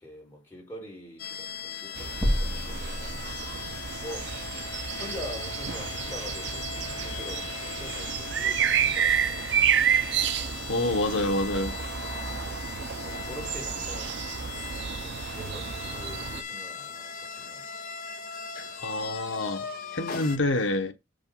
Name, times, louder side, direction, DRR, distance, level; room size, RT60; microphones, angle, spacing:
voice 1, 0.0-3.3 4.0-4.3 5.0-9.5 13.0-14.2 15.0-17.7, left 1 dB, 10° left, 4.8 m, -44 dB
sound 1, 1.2-20.4, left 7 dB, 50° left, 2.1 m, -39 dB
sound 2, 2.0-16.4, right 8 dB, 65° right, 0.6 m, -30 dB
sound 3, 2.2-3.8, equal, 15° right, 2.5 m, -29 dB
voice 2, 10.7-11.8 18.8-20.9, left 2 dB, 75° left, 1.0 m, -27 dB
7.8 x 5.3 x 5.4 m
head